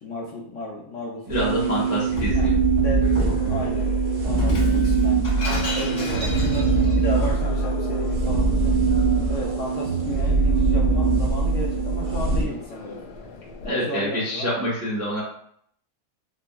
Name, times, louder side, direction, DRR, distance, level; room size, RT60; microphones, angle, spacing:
voice 1, 0.0-2.0 2.3-2.5 2.8-3.9 4.2-5.3 5.7-8.8 9.3-13.0 13.6-14.5, left 1 dB, 65° left, -3 dB, 0.8 m, -34 dB
voice 2, 1.3-2.5 13.6-15.2, equal, 20° right, -6 dB, 0.4 m, -26 dB
sound 1, 1.3-12.4, right 4 dB, 80° right, 1.2 m, -22 dB
sound 2, 1.6-13.7, left 5 dB, 85° left, 1.2 m, -39 dB
Shatter, 1.6-2.4 3.2-3.5 4.3-7.0, left 2 dB, 45° left, 1.1 m, -32 dB
4.1 x 2.0 x 2.2 m, 0.65 s
omnidirectional pair, 1.7 m